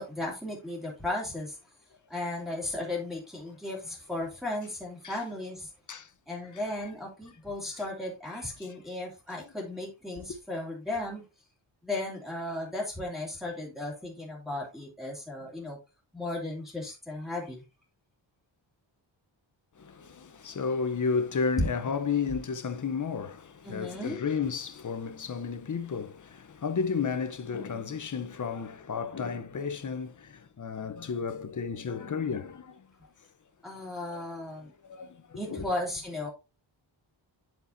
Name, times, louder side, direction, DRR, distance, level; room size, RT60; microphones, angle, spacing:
voice 1, 0.0-1.6 2.1-5.7 6.3-11.2 11.8-15.8 16.1-17.6 21.6-21.7 23.6-24.2 33.6-34.7 35.4-36.3, left 1 dB, ahead, 2.7 m, -35 dB
voice 2, 19.8-32.9 34.1-34.2 34.8-35.7, left 5 dB, 40° left, 0.8 m, -32 dB
8.1 x 7.0 x 2.7 m
wide cardioid pair, 180°, 47 cm